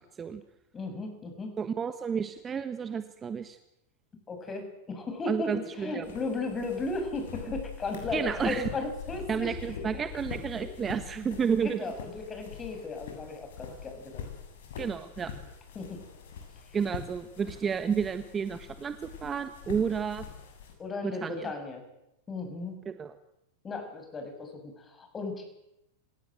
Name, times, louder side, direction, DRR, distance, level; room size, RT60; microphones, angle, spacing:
voice 1, 0.7-1.5 4.3-10.0 10.5-10.7 11.6-14.3 15.7-16.0 16.7-16.8 20.8-21.8 22.3-22.8 23.6-25.4, left 3 dB, 20° left, 6 dB, 7.6 m, -36 dB
voice 2, 1.6-3.6 5.3-6.1 8.1-8.7 9.3-11.9 14.8-15.3 16.7-20.2 21.0-21.5 22.8-23.1, right 6 dB, 25° right, 10 dB, 1.5 m, -31 dB
sound 1, 6.0-20.7, left 7 dB, 70° left, 7.5 m, -43 dB
27.0 x 17.0 x 7.9 m, 0.86 s
hypercardioid pair, 105°, 0 cm